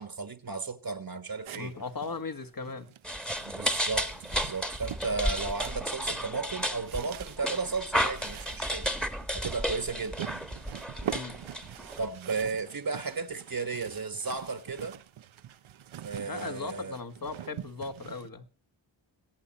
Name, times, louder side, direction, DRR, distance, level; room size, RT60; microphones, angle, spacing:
voice 1, 0.0-1.7 3.4-8.9 9.3-10.2 12.0-15.0 16.0-17.0, right 4 dB, 45° right, 1.5 m, -34 dB
Rummaging through cardboard boxes, 1.4-18.3, right 11 dB, 75° right, 0.8 m, -44 dB
voice 2, 1.5-2.9 11.1-11.4 16.3-18.5, left 4 dB, 45° left, 1.6 m, -38 dB
sound 1, 3.0-12.1, equal, ahead, 1.4 m, -33 dB
22.5 x 8.5 x 4.2 m
cardioid pair, 50°, 48 cm